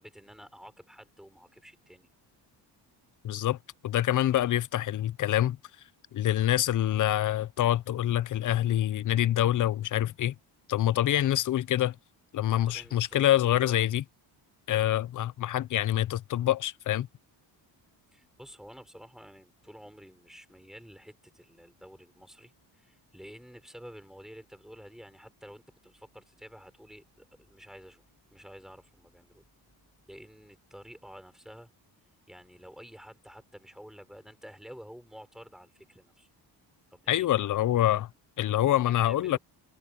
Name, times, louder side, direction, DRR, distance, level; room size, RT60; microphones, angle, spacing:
voice 1, 0.0-2.1 12.6-13.9 18.1-28.0 28.3-29.4 30.1-31.7 32.3-36.3 36.9-37.3 38.8-39.4, equal, ahead, 5.3 m, -50 dB
voice 2, 3.2-3.6 3.8-5.6 6.1-10.3 10.7-11.9 12.3-14.0 14.7-17.1 37.1-38.1 38.4-39.4, left 12 dB, 45° left, 0.5 m, -26 dB
cardioid pair, 115°, 45 cm